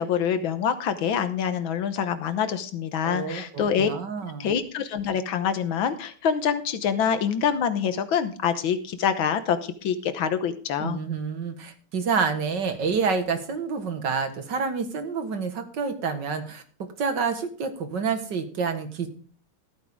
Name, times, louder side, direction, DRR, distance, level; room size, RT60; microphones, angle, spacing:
voice 1, 0.0-3.9 4.4-11.0, left 7 dB, 70° left, 10 dB, 1.8 m, -26 dB
voice 2, 3.0-4.5 10.8-19.1, right 5 dB, 55° right, 7 dB, 2.2 m, -28 dB
15.0 x 9.1 x 3.7 m, 0.43 s
omnidirectional pair, 2.3 m